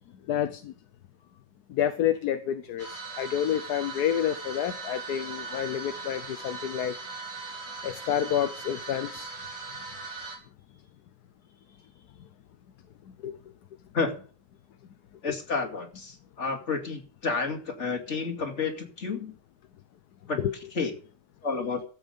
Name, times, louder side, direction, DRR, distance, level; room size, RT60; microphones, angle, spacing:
voice 1, 0.3-0.7 1.7-7.0 7.8-9.3 13.2-13.4 20.4-20.5, left 10 dB, 70° left, 1.3 m, -29 dB
sound 1, 2.8-10.4, right 4 dB, 40° right, 3.8 m, -39 dB
voice 2, 15.2-19.4 20.3-20.4 20.7-20.9 21.4-21.8, left 4 dB, 40° left, 2.5 m, -30 dB
15.5 x 8.1 x 5.2 m
omnidirectional pair, 1.8 m